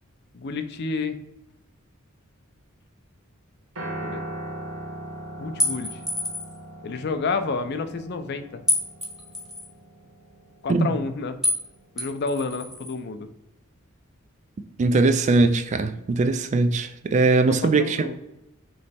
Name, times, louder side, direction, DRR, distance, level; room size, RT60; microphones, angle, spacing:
voice 1, 0.3-1.2 4.0-4.2 5.4-6.0 6.8-8.6 10.6-11.4 12.0-13.3 17.5-18.2, left 4 dB, 55° left, 0.4 m, -29 dB
Piano, 3.8-12.0, right 1 dB, 70° right, 1.1 m, -40 dB
sound 1, 5.6-6.6 8.7-9.7 11.4-11.7 12.0-12.9, left 1 dB, ahead, 0.8 m, -27 dB
voice 2, 14.8-18.2, right 3 dB, 35° right, 0.3 m, -21 dB
3.2 x 3.1 x 4.1 m
head